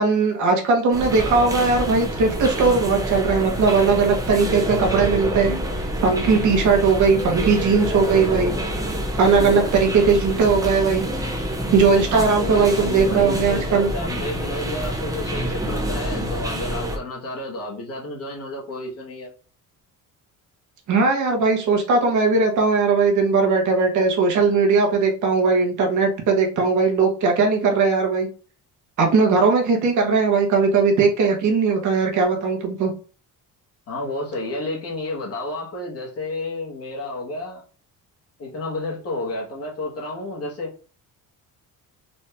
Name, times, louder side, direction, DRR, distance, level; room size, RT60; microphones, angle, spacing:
voice 1, 0.0-5.6 6.0-8.5 9.2-11.0 11.7-13.9 20.9-28.3 29.0-32.9, right 4 dB, 55° right, 1.2 m, -19 dB
sound 1, 0.9-17.0, right 1 dB, 10° right, 0.6 m, -27 dB
voice 2, 12.1-19.3 33.9-37.6 38.4-40.7, left 2 dB, 45° left, 1.4 m, -31 dB
4.1 x 2.7 x 3.4 m
cardioid pair, 170°, 35 cm